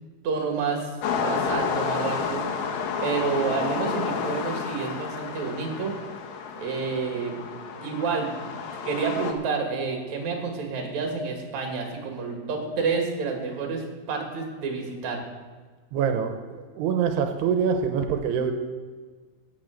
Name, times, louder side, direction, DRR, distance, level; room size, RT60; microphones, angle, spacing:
voice 1, 0.2-2.7 3.0-5.9 6.6-7.4 7.8-8.5 8.8-15.2, right 5 dB, 50° right, 1 dB, 3.2 m, -29 dB
sound 1, 1.0-9.3, left 6 dB, 70° left, 2.6 m, -30 dB
voice 2, 15.9-18.5, right 7 dB, 85° right, 6 dB, 3.0 m, -25 dB
16.5 x 6.8 x 6.4 m, 1.5 s
omnidirectional pair, 4.6 m